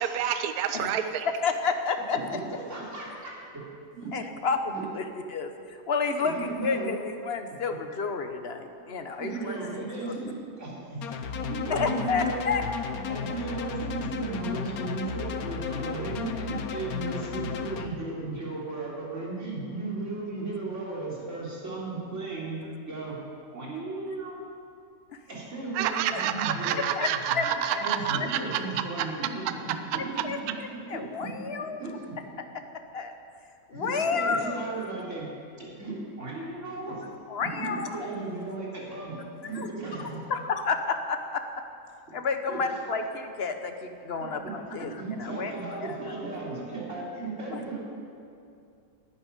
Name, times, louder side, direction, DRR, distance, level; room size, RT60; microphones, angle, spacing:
voice 1, 0.0-1.3 25.7-28.6 29.0-29.1, right 9 dB, 65° right, 9 dB, 1.2 m, -28 dB
voice 2, 1.4-2.4 4.1-10.1 11.7-12.6 26.7-27.1 27.3-27.8 28.1-28.3 29.9-31.8 32.9-33.1 33.7-34.6 37.3-37.9 39.5-39.7 40.3-41.4 42.1-44.9 45.2-45.5 45.8-46.1 47.5-47.6, left 5 dB, 40° left, 7 dB, 1.1 m, -30 dB
voice 3, 2.1-3.6 3.9-4.2 4.7-4.9 6.2-6.9 9.1-11.0 11.4-12.6 12.9-22.6 22.9-23.2 23.5-24.4 25.3-26.8 27.3-30.2 30.9-31.0 31.6-32.2 33.7-35.3 35.6-37.0 37.5-39.2 39.4-40.2 42.5-42.6 44.7-47.8, right 3 dB, 45° right, -5 dB, 4.0 m, -35 dB
sound 1, 11.0-17.9, left 6 dB, 65° left, 1.2 m, -34 dB
11.5 x 9.9 x 10.0 m, 2.5 s
omnidirectional pair, 1.8 m